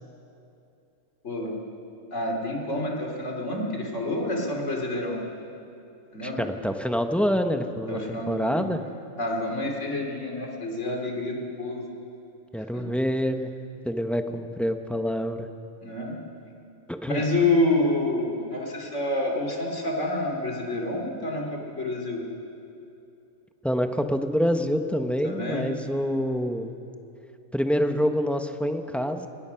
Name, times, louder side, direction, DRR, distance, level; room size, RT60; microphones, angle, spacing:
voice 1, 2.1-5.2 6.1-6.5 7.9-8.7 9.2-11.9 12.7-12.8 15.8-16.2 17.1-22.2 25.2-25.7, left 2 dB, 60° left, 0 dB, 3.4 m, -28 dB
voice 2, 6.2-8.8 12.5-13.5 13.8-15.5 16.9-17.2 23.6-26.7 27.5-29.3, equal, ahead, 6 dB, 0.7 m, -26 dB
23.5 x 19.0 x 5.8 m, 2.7 s
omnidirectional pair, 1.4 m